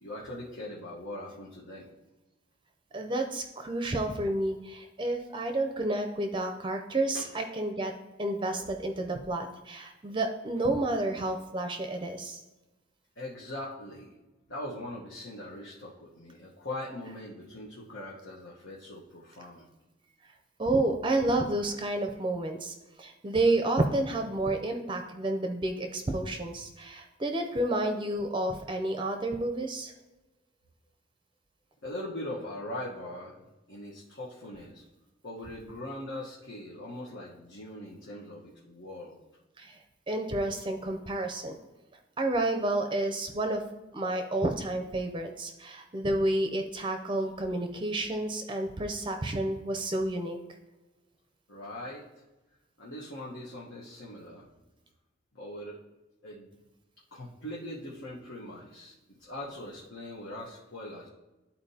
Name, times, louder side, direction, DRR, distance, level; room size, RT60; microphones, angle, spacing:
voice 1, 0.0-1.9 7.1-7.3 13.2-14.1 14.5-19.7 31.8-33.3 33.7-34.8 35.2-39.2 51.5-52.0 52.8-54.5 55.3-55.8 56.2-56.6 57.1-58.9 59.2-61.1, left 1 dB, 80° left, -5 dB, 1.1 m, -41 dB
voice 2, 2.9-7.9 8.2-12.4 20.6-29.9 39.6-39.8 40.1-41.6 42.2-43.6 43.9-50.4, right 2 dB, 25° right, 5 dB, 0.5 m, -30 dB
12.0 x 4.3 x 2.8 m, 1.1 s
head